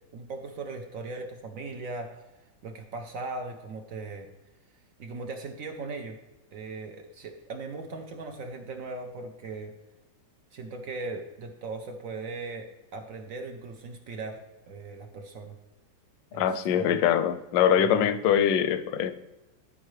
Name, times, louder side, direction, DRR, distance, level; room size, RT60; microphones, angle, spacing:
voice 1, 0.0-2.3 2.6-4.3 5.0-6.2 6.5-9.7 10.5-15.6 16.3-17.0 17.8-18.1, right 3 dB, 60° right, 5 dB, 0.9 m, -39 dB
voice 2, 16.3-19.1, left 9 dB, 75° left, 12 dB, 1.2 m, -23 dB
13.5 x 5.1 x 3.2 m, 1.0 s
omnidirectional pair, 2.1 m